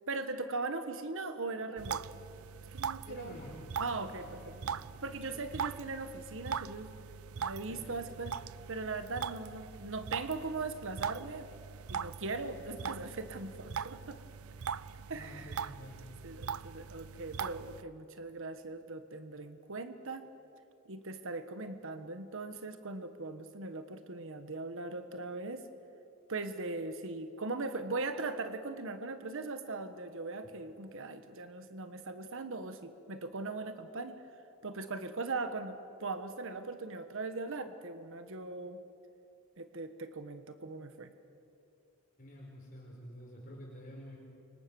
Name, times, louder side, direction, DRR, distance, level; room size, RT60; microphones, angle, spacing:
voice 1, 0.1-2.1 2.7-3.4 3.8-4.4 5.0-6.9 7.4-8.4 8.7-11.5 11.9-14.2 15.1-15.7 16.2-20.2 20.9-25.7 26.3-34.2 34.6-38.8 39.6-41.1, right 3 dB, 65° right, 9 dB, 1.4 m, -39 dB
sound 1, 1.8-17.8, right 7 dB, 80° right, 0.6 m, -41 dB
voice 2, 3.0-3.6 4.2-4.8 5.3-5.4 7.7-7.8 15.1-16.2 42.2-44.2, equal, 40° left, -3 dB, 5.1 m, -49 dB
29.5 x 25.5 x 7.1 m, 2.7 s
head